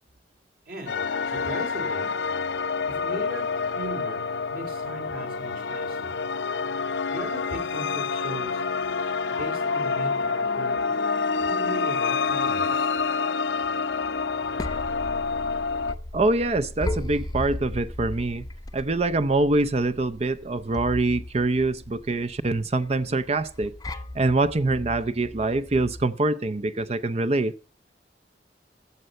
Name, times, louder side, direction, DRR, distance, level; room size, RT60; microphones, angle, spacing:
voice 1, 0.7-2.1 2.9-4.2 4.5-6.1 7.1-8.6 9.3-10.8 11.4-12.9, equal, 60° right, 4.2 m, -38 dB
sound 1, 0.9-16.0, left 5 dB, 85° left, 0.6 m, -27 dB
sound 2, 14.2-26.1, left 1 dB, 20° left, 0.7 m, -37 dB
voice 2, 16.1-18.5 18.7-23.7 24.1-27.5, right 2 dB, 35° right, 0.5 m, -24 dB
14.0 x 7.9 x 5.4 m
head